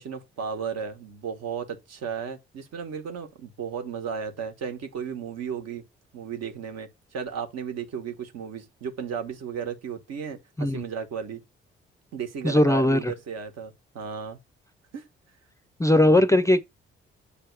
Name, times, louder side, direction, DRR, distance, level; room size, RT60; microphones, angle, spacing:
voice 1, 0.0-5.9 6.1-11.4 12.1-14.4 14.9-15.1 15.9-16.2, right 7 dB, 55° right, 1.4 m, -34 dB
voice 2, 12.4-13.1 15.8-16.6, left 1 dB, 10° left, 0.6 m, -19 dB
8.4 x 3.3 x 4.7 m
figure-of-eight pair, 40°, 31 cm